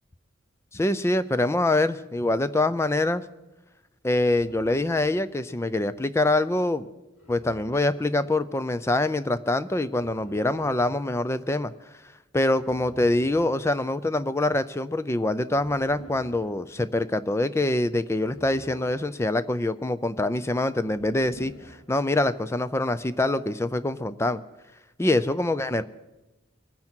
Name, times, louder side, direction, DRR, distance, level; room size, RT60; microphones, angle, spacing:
voice 1, 0.7-3.2 4.0-6.8 7.3-11.7 12.3-24.4 25.0-25.8, left 2 dB, 15° left, 14 dB, 0.4 m, -25 dB
sound 1, 4.2-5.2 7.2-8.1 9.9-10.9 12.5-13.6 15.5-16.5 18.1-19.2 20.8-21.8, equal, 85° left, 3.7 m, -47 dB
23.0 x 9.6 x 4.5 m, 1.0 s
head